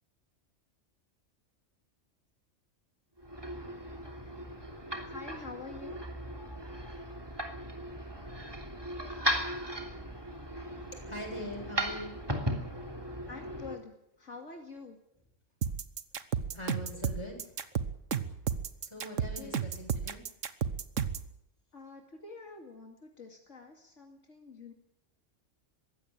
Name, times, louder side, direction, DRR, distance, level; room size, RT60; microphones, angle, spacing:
sound 1, 3.2-13.8, equal, 20° right, 3.1 m, -37 dB
voice 1, 5.1-6.0 12.6-12.7 13.3-15.0 19.0-19.6 21.7-24.7, left 4 dB, 70° left, 2 dB, 2.7 m, -47 dB
voice 2, 10.9-12.2 16.5-17.5 18.8-20.2, left 1 dB, 20° left, 1 dB, 7.7 m, -42 dB
sound 2, 15.6-21.3, right 7 dB, 80° right, 1.5 m, -32 dB
21.5 x 16.5 x 8.9 m, 0.77 s
omnidirectional pair, 1.3 m